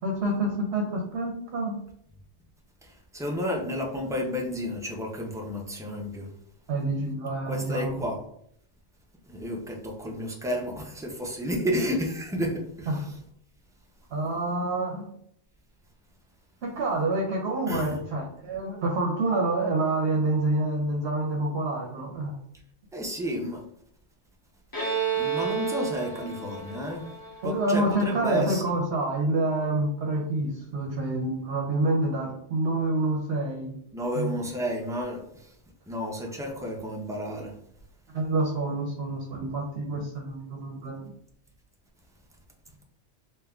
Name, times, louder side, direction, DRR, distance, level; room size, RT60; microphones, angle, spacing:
voice 1, 0.0-1.8 6.7-8.0 12.9-13.0 14.1-15.1 16.6-22.3 27.4-33.7 34.1-34.3 38.1-41.1, right 2 dB, 65° right, 0 dB, 0.9 m, -27 dB
voice 2, 2.8-6.3 7.5-8.2 9.3-13.1 17.7-17.9 22.9-23.6 25.1-27.0 27.4-28.6 33.9-35.5 35.9-37.5 39.9-40.0, equal, 5° right, -1 dB, 0.4 m, -31 dB
Bowed string instrument, 24.7-28.3, right 7 dB, 20° left, 0.9 m, -31 dB
3.5 x 2.8 x 3.4 m, 0.70 s
omnidirectional pair, 1.2 m